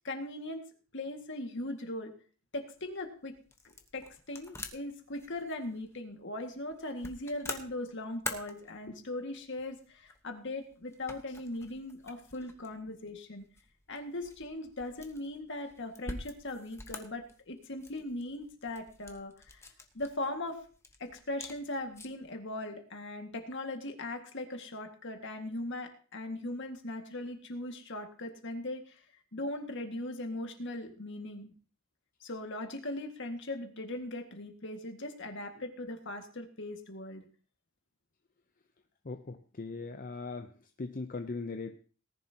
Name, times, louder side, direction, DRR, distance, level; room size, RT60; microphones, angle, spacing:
voice 1, 0.0-0.6 0.9-2.1 2.5-3.3 3.6-13.5 13.9-19.7 19.9-20.6 21.0-29.0 29.3-31.5 32.2-37.2, left 1 dB, 60° left, 4 dB, 1.9 m, -39 dB
sound 1, 2.7-22.3, left 2 dB, 15° left, 1.1 m, -48 dB
voice 2, 39.0-40.5 40.8-41.8, left 3 dB, 40° left, 7 dB, 0.7 m, -39 dB
18.5 x 10.5 x 2.9 m, 0.39 s
head